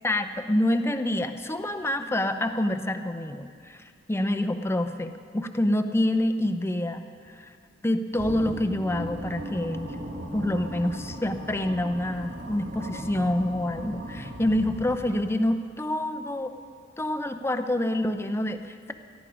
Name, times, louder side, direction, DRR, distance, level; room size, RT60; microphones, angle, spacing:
voice 1, 0.0-7.5 7.8-10.0 10.3-16.5 17.0-18.9, left 1 dB, 15° left, 7 dB, 0.7 m, -27 dB
sound 1, 8.2-15.4, right 1 dB, 85° right, 1.7 m, -37 dB
18.0 x 13.5 x 5.0 m, 2.1 s
head